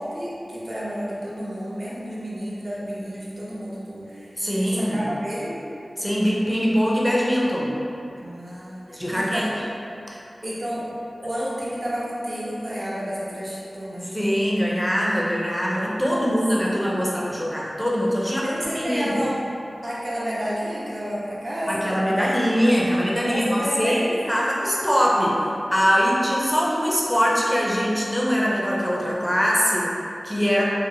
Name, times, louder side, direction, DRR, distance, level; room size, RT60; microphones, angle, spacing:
voice 1, 0.0-5.6 8.2-9.5 10.4-10.8 11.2-14.1 15.8-16.4 16.7-17.2 18.4-19.4 19.8-22.0 23.2-24.0, equal, 50° right, -8 dB, 0.6 m, -31 dB
voice 2, 4.4-5.1 6.0-7.8 8.9-9.5 10.1-10.2 14.1-19.1 21.7-25.4 25.7-30.6, equal, 5° left, -5 dB, 0.5 m, -22 dB
2.8 x 2.0 x 2.6 m, 2.7 s
wide cardioid pair, 65°, 0 cm